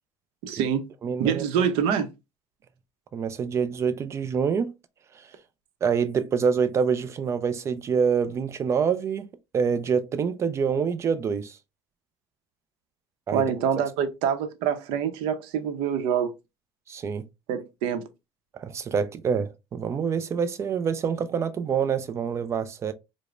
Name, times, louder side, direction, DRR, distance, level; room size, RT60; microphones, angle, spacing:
voice 1, 0.4-0.8 1.2-2.1 13.3-16.3 17.5-18.1, right 8 dB, 80° right, 0.6 m, -26 dB
voice 2, 1.0-1.7 3.1-4.7 5.1-5.3 5.8-9.3 9.5-11.6 13.3-13.5 16.9-17.3 18.5-22.9, right 6 dB, 30° right, 0.3 m, -26 dB
4.9 x 2.0 x 2.4 m
cardioid pair, 140°, 10 cm